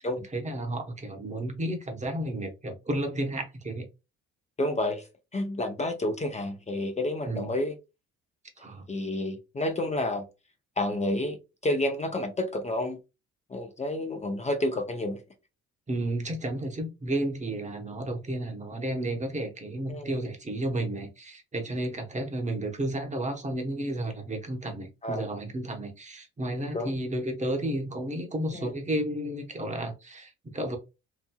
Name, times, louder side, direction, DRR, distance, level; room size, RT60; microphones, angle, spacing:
voice 1, 0.3-3.8 7.2-7.5 8.6-8.9 15.9-30.8, right 1 dB, 25° right, 0.9 m, -32 dB
voice 2, 4.6-5.0 5.3-7.7 8.9-10.3 10.8-11.4 11.6-13.0 13.5-15.2 19.9-20.1 25.0-25.2 26.7-26.9 28.6-28.7, left 1 dB, 25° left, 0.5 m, -29 dB
2.9 x 2.6 x 2.2 m
cardioid pair, 90°, 30 cm